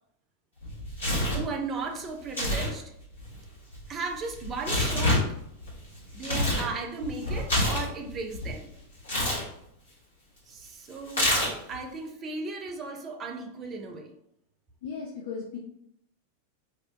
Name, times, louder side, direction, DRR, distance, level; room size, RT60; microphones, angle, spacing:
Tearing, 0.6-1.5 2.2-2.7 3.0-6.7 7.0-8.5 9.0-9.4 11.1-11.8, left 1 dB, 70° left, 1.2 m, -27 dB
voice 1, 1.3-2.9 3.9-5.3 6.1-8.7 10.5-11.3 11.7-14.1, right 4 dB, 25° right, 3 dB, 0.5 m, -36 dB
voice 2, 14.8-15.6, left 5 dB, 55° left, -2 dB, 0.4 m, -36 dB
2.5 x 2.4 x 3.6 m, 0.75 s
figure-of-eight pair, 90°, 0 cm